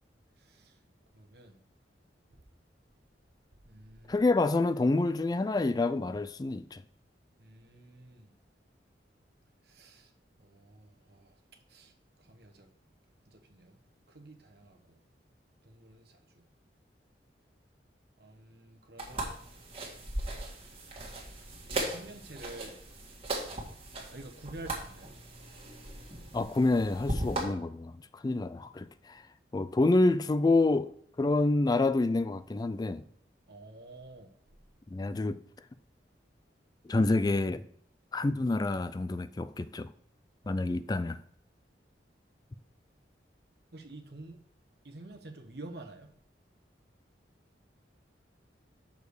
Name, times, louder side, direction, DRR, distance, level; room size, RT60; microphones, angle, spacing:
voice 1, 0.4-0.8 1.1-1.6 3.6-4.2 7.4-8.3 9.6-10.1 10.4-11.3 11.7-11.9 12.2-12.7 13.3-13.8 14.1-15.0 15.6-16.2 18.2-19.3 21.6-22.8 24.1-25.1 33.5-34.3 40.4-40.6 43.7-44.4 44.8-46.1, right 2 dB, 60° right, 1.1 m, -49 dB
voice 2, 4.1-6.8 26.3-28.0 28.2-29.2 29.5-30.9 31.2-33.0 34.9-35.4 36.9-37.6 38.1-39.9 40.5-41.2, left 2 dB, 20° left, 0.3 m, -27 dB
sound 1, 19.0-27.4, right 1 dB, 35° right, 1.8 m, -38 dB
6.5 x 5.2 x 6.4 m
head